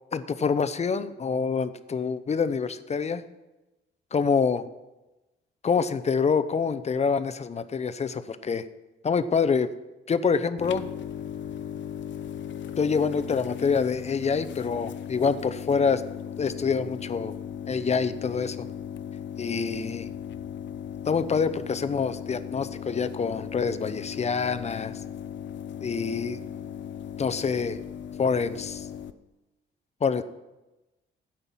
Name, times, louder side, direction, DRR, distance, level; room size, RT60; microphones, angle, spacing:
voice 1, 0.1-3.2 4.1-4.7 5.6-8.6 9.0-9.7 10.1-10.9 12.8-16.0 16.4-17.3 17.7-18.7 19.4-20.1 21.0-25.0 25.8-26.4 27.2-27.8 28.2-28.9 30.0-30.2, left 5 dB, 35° left, 12 dB, 0.7 m, -26 dB
sound 1, 10.6-29.1, left 9 dB, 65° left, 0.7 m, -37 dB
12.0 x 9.0 x 5.6 m, 1.1 s
cardioid pair, 90°, 20 cm